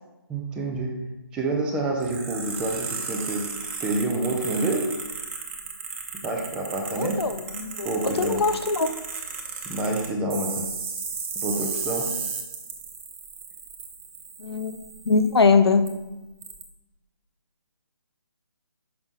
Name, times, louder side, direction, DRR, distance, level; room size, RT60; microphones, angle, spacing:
voice 1, 0.3-1.0 1.3-3.5 3.8-4.9 6.1-7.2 7.8-8.4 9.7-10.7 11.4-12.1, right 2 dB, 5° right, 1 dB, 0.4 m, -28 dB
sound 1, 2.0-15.4 15.9-16.0 16.4-16.6, right 5 dB, 30° right, 1.0 m, -35 dB
voice 2, 6.9-8.9 14.4-15.9, left 4 dB, 75° left, 9 dB, 0.7 m, -22 dB
5.9 x 5.7 x 3.5 m, 1.0 s
figure-of-eight pair, 150°, 13 cm